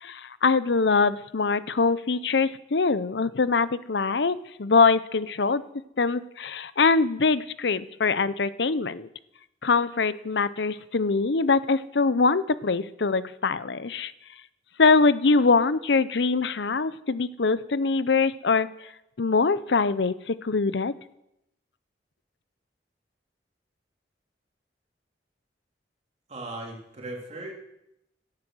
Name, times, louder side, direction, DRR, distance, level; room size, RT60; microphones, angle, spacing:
voice 1, 0.0-5.6 6.0-9.1 9.6-14.1 14.8-18.7 19.2-20.9, left 4 dB, 70° left, 16 dB, 0.7 m, -23 dB
voice 2, 26.3-27.5, right 2 dB, 40° right, 0 dB, 3.1 m, -37 dB
17.0 x 11.5 x 6.3 m, 0.83 s
head